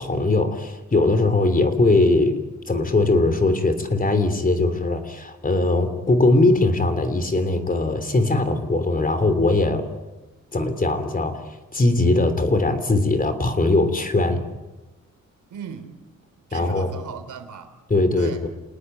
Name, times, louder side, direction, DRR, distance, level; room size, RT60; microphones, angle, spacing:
voice 1, 0.0-9.9 10.5-11.4 11.7-14.4 16.5-16.9 17.9-18.5, left 2 dB, 30° left, 10 dB, 3.3 m, -20 dB
voice 2, 15.5-16.0 16.5-17.7 18.2-18.4, right 7 dB, 85° right, 9 dB, 3.2 m, -37 dB
29.0 x 19.5 x 9.2 m, 1.1 s
cardioid pair, 105°, 30 cm